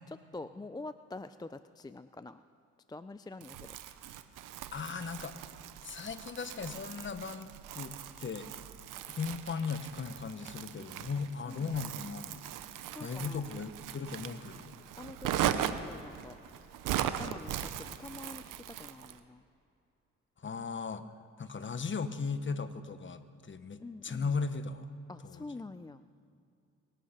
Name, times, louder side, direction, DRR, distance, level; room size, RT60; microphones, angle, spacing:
voice 1, 0.1-2.4 2.9-3.8 11.1-12.0 12.9-13.7 15.0-16.4 17.0-19.4 23.8-24.4 25.1-26.0, left 2 dB, 15° left, 11 dB, 0.4 m, -46 dB
Crumpling crinkling, 3.4-19.2, right 10 dB, 90° right, 0.8 m, -39 dB
voice 2, 4.7-5.4 5.8-7.5 7.7-8.5 9.1-12.4 13.0-14.8 20.4-21.1 21.4-24.9 25.2-25.4, left 5 dB, 40° left, 11 dB, 1.1 m, -37 dB
24.0 x 9.3 x 5.8 m, 2.7 s
cardioid pair, 70°, 31 cm